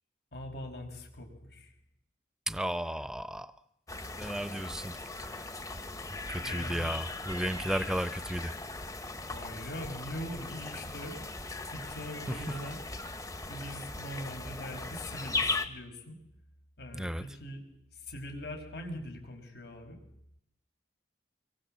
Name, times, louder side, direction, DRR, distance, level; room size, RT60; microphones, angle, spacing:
voice 1, 0.3-1.7 6.4-6.9 9.3-11.2 11.7-12.8 13.5-16.2 16.8-17.6 18.1-20.0, equal, 65° left, 4 dB, 5.5 m, -42 dB
voice 2, 2.5-3.5 4.2-5.4 6.3-8.5 12.3-12.6 16.9-17.2, right 1 dB, 5° right, 13 dB, 0.9 m, -34 dB
sound 1, 3.9-15.7, left 3 dB, 20° left, 1.4 m, -38 dB
25.5 x 23.0 x 7.6 m, 0.79 s
head